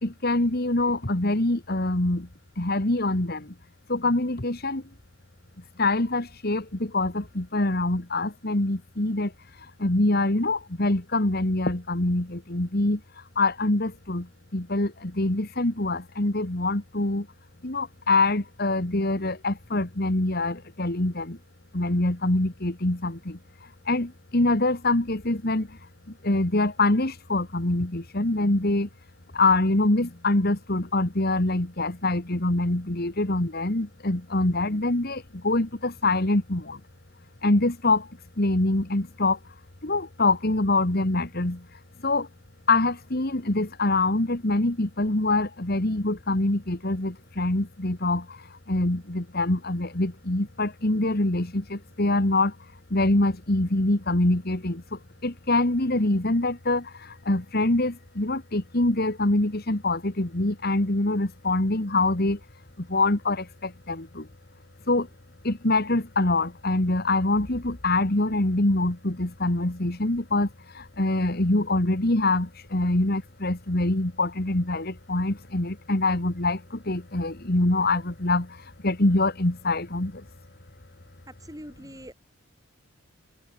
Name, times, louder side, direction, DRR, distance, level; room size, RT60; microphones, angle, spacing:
voice 1, 0.0-2.3 2.6-3.5 3.9-4.8 5.8-9.3 9.6-17.3 17.6-21.4 21.7-25.8 26.2-28.9 29.3-36.8 37.4-39.4 39.8-42.3 42.7-52.6 52.9-62.4 62.8-64.3 64.9-65.1 65.4-80.3, left 2 dB, 45° left, 1.9 m, -25 dB
voice 2, 81.3-82.1, equal, 15° right, 7.4 m, -43 dB
head